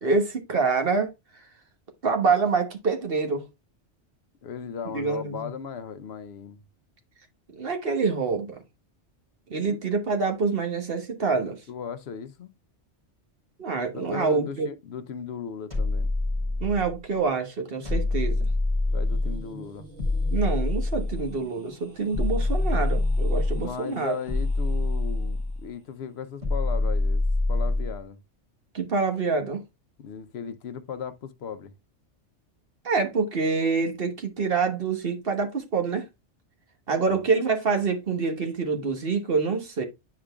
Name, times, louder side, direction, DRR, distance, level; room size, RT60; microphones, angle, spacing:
voice 1, 0.0-1.1 2.0-3.4 4.9-5.5 7.6-8.6 9.5-11.6 13.6-14.7 16.6-18.5 20.3-24.1 28.7-29.6 32.8-36.1 36.9-39.9, right 4 dB, 55° right, 1.3 m, -26 dB
voice 2, 4.4-6.6 9.7-9.9 11.7-12.5 13.9-16.1 18.9-19.9 23.6-28.2 30.0-31.7 37.1-37.2, left 7 dB, 65° left, 0.9 m, -37 dB
sound 1, 15.7-17.0 17.9-19.5 20.0-21.4 22.1-23.7 24.3-25.7 26.4-28.0, left 2 dB, 30° right, 2.8 m, -25 dB
sound 2, 18.6-25.6, right 2 dB, 75° right, 2.0 m, -49 dB
9.5 x 4.9 x 2.3 m
omnidirectional pair, 1.2 m